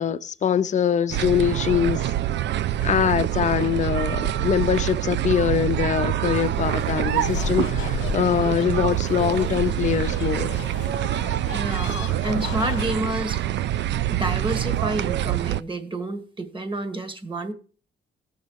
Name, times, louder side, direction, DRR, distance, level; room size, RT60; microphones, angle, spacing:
voice 1, 0.0-2.1 2.8-10.5, left 8 dB, 35° left, 0.6 m, -23 dB
sound 1, 1.1-15.6, right 12 dB, 65° right, 0.4 m, -25 dB
sound 2, 6.3-12.8, left 9 dB, 70° left, 0.7 m, -36 dB
voice 2, 11.5-13.4 13.7-17.5, right 1 dB, 25° right, 1.7 m, -29 dB
16.5 x 6.4 x 4.7 m
cardioid pair, 90°, 20 cm